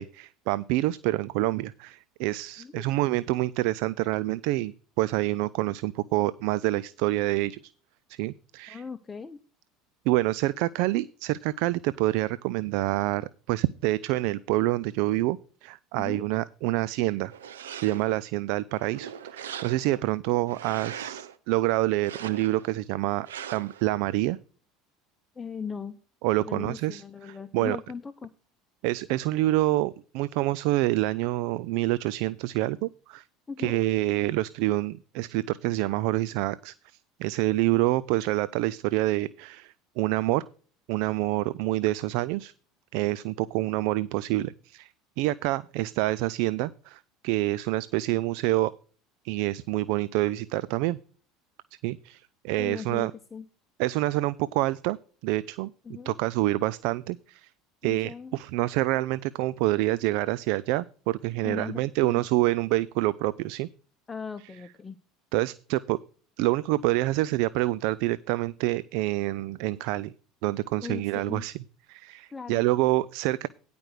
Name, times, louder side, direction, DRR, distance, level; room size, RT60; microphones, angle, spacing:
voice 1, 0.0-7.7 8.1-8.8 10.1-17.3 17.8-23.3 23.5-24.4 26.2-27.8 28.8-33.2 33.6-40.4 40.9-42.5 42.9-44.9 45.2-48.7 49.2-51.0 51.8-53.1 53.8-55.0 55.2-55.7 56.0-57.5 57.8-63.7 65.3-66.0 66.4-70.1 70.4-71.5 71.9-73.5, right 17 dB, 70° right, 19 dB, 0.4 m, -27 dB
voice 2, 2.6-3.0 8.7-9.4 16.0-16.2 25.3-26.0 26.4-28.3 33.5-33.8 52.6-53.5 55.8-56.2 57.8-58.3 61.4-62.2 64.1-65.0 70.8-71.5 72.3-72.6, left 6 dB, 20° left, 9 dB, 0.9 m, -38 dB
sound 1, 17.3-18.2 18.7-20.0 20.5-21.4 21.9-22.7 23.3-23.8, right 8 dB, 90° right, 0.8 m, -40 dB
10.5 x 5.2 x 6.3 m, 0.39 s
hypercardioid pair, 85°, 0 cm